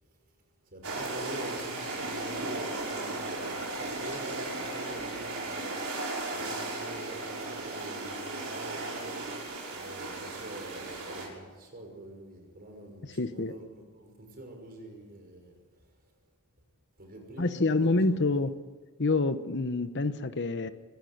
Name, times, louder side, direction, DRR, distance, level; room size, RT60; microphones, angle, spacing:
voice 1, 0.7-9.2 9.7-15.6 17.0-18.1, right 1 dB, 40° right, 2 dB, 5.8 m, -45 dB
sound 1, 0.8-11.3, right 2 dB, 70° right, 6.2 m, -36 dB
voice 2, 13.1-13.5 17.4-18.5 19.0-20.7, left 3 dB, 50° left, 11 dB, 1.0 m, -27 dB
24.5 x 13.0 x 9.5 m, 1.5 s
head